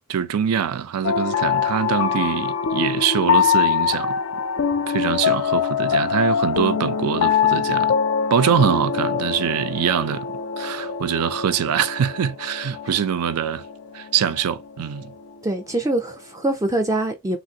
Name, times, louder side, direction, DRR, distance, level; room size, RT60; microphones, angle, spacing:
voice 1, 0.1-4.1 4.9-7.9 8.3-10.3 10.6-13.6 13.9-15.1, right 8 dB, 90° right, 0.4 m, -23 dB
sound 1, 1.0-15.3, left 7 dB, 65° left, 0.4 m, -23 dB
voice 2, 15.4-17.4, right 1 dB, 15° right, 0.4 m, -24 dB
3.3 x 2.4 x 2.7 m
head